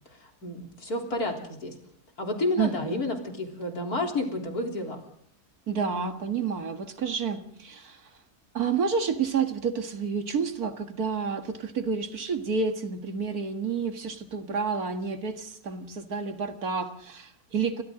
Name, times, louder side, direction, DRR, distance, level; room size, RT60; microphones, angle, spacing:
voice 1, 0.1-1.7 2.2-5.0, left 2 dB, 70° left, 1 dB, 4.2 m, -30 dB
voice 2, 2.6-3.0 5.7-8.0 8.5-17.8, right 5 dB, 70° right, 6 dB, 2.2 m, -29 dB
30.0 x 25.0 x 3.9 m, 0.64 s
omnidirectional pair, 1.7 m